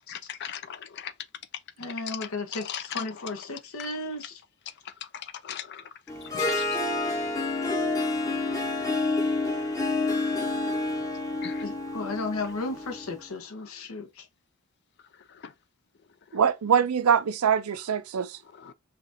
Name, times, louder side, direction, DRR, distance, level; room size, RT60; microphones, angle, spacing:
voice 1, 0.1-1.1 2.1-2.2 2.7-3.0 5.1-5.8 6.3-6.7 11.4-11.6 18.6-18.7, left 9 dB, 50° left, 0.4 m, -38 dB
voice 2, 1.8-4.4 11.6-14.3, left 3 dB, 70° left, 0.9 m, -34 dB
Harp, 6.1-13.2, left 2 dB, 15° left, 0.8 m, -28 dB
voice 3, 16.3-18.4, right 7 dB, 75° right, 0.5 m, -23 dB
5.7 x 2.5 x 2.6 m
head